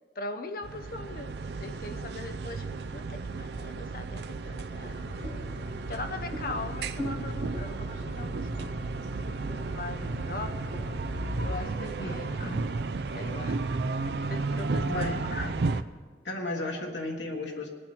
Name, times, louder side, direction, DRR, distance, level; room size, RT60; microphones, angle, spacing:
voice 1, 0.2-1.3 1.6-5.0 5.9-8.7 9.7-10.6 11.4-12.7 13.1-13.8 14.0-15.6, left 2 dB, 55° left, 7 dB, 0.8 m, -40 dB
sound 1, 0.6-15.8, right 3 dB, 70° right, 0.5 m, -33 dB
sound 2, 4.8-11.6, left 1 dB, 20° right, 3.8 m, -39 dB
voice 2, 14.9-15.2 16.2-17.7, left 2 dB, 85° left, 0 dB, 1.6 m, -34 dB
20.5 x 8.6 x 4.4 m, 1.5 s
head